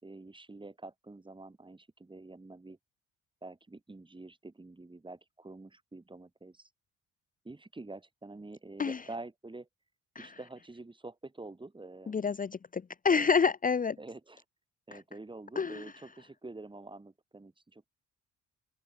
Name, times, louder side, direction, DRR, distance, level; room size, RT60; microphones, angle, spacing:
voice 1, 0.0-2.8 3.4-6.7 7.4-9.7 10.2-12.3 14.0-14.4 14.9-17.9, right 2 dB, 15° right, 3.1 m, -47 dB
voice 2, 12.1-14.0 14.9-15.0 15.5-15.9, left 5 dB, 25° left, 0.8 m, -29 dB
open air
cardioid pair, 90°, 30 cm